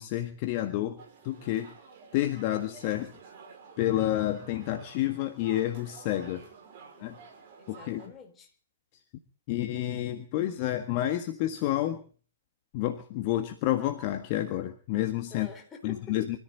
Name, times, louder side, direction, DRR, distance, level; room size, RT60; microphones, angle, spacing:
voice 1, 0.0-1.7 2.1-3.1 3.8-6.5 7.0-7.2 7.7-8.0 9.5-12.0 12.7-15.5 15.8-16.4, left 14 dB, 40° left, 7 dB, 1.6 m, -29 dB
sound 1, 1.0-8.1, right 5 dB, 45° right, 5.3 m, -51 dB
voice 2, 6.4-7.0 7.6-8.5 15.3-16.2, left 5 dB, 20° left, 3 dB, 4.1 m, -48 dB
25.0 x 14.0 x 3.9 m, 0.43 s
figure-of-eight pair, 115°, 0 cm